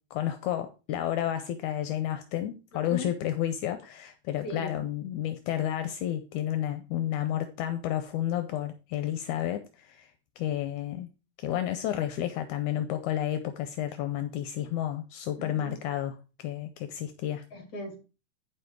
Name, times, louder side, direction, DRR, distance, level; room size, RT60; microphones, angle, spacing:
voice 1, 0.1-10.1 10.4-11.1 11.4-17.5, left 11 dB, 80° left, 8 dB, 2.1 m, -31 dB
voice 2, 2.7-3.1 4.4-4.8 15.4-15.8 17.5-18.0, left 2 dB, 30° left, 2 dB, 2.7 m, -39 dB
9.1 x 5.6 x 4.5 m, 0.32 s
omnidirectional pair, 3.6 m